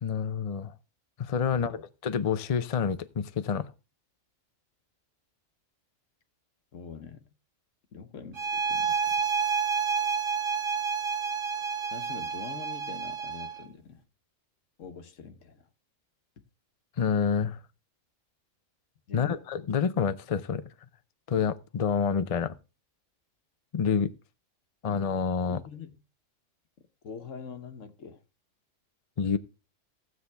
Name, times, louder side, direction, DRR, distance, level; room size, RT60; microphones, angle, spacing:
voice 1, 0.0-0.7 1.2-3.7 17.0-17.6 19.1-20.6 21.3-22.5 23.7-24.1 24.8-25.6 29.2-29.4, left 6 dB, 45° left, 0.5 m, -28 dB
voice 2, 6.7-7.3 7.9-9.3 11.9-14.0 14.8-15.7 16.4-16.5 19.1-19.4 25.4-26.0 27.0-28.2, left 6 dB, 70° left, 1.4 m, -44 dB
sound 1, 8.3-13.6, right 6 dB, 45° right, 1.1 m, -29 dB
15.5 x 7.7 x 3.3 m
omnidirectional pair, 1.4 m